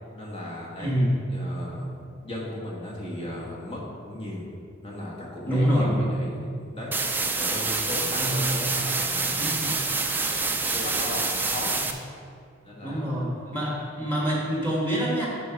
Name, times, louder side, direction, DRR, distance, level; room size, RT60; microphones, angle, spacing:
voice 1, 0.1-1.0 1.3-2.0 2.2-4.5 4.8-6.9 7.4-9.4 10.2-10.4 10.7-11.7 12.6-13.1, left 1 dB, 30° left, -4 dB, 1.6 m, -36 dB
voice 2, 0.8-1.1 5.5-6.0 8.2-8.5 9.4-9.8 11.8-11.9 12.8-15.3, equal, 10° left, -5 dB, 1.8 m, -26 dB
sound 1, 6.9-11.9, right 3 dB, 10° right, 0.4 m, -27 dB
8.1 x 5.7 x 4.7 m, 2.3 s
head